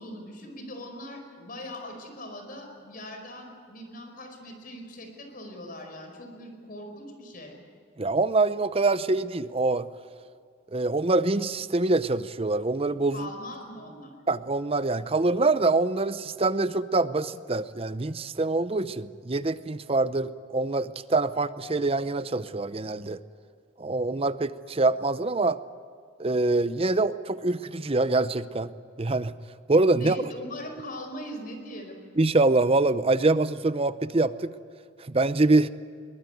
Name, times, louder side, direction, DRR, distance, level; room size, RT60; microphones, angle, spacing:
voice 1, 0.0-7.6 13.1-14.1 30.0-32.0, left 1 dB, 50° left, 4 dB, 4.9 m, -41 dB
voice 2, 8.0-9.9 10.7-13.3 14.3-23.2 23.8-25.6 26.2-28.7 29.0-29.3 29.7-30.2 32.2-34.5 35.1-35.7, right 2 dB, 30° right, 14 dB, 0.7 m, -25 dB
22.0 x 20.0 x 9.3 m, 2.2 s
head